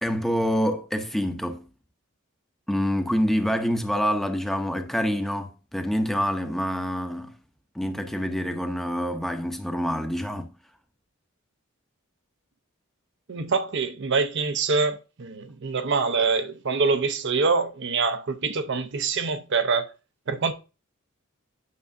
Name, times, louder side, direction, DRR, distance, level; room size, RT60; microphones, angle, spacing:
voice 1, 0.0-1.6 2.7-7.3 7.7-10.5, equal, ahead, 0.7 m, -26 dB
voice 2, 13.3-19.9 20.3-20.5, right 4 dB, 60° right, 0.6 m, -25 dB
9.5 x 6.2 x 2.6 m
head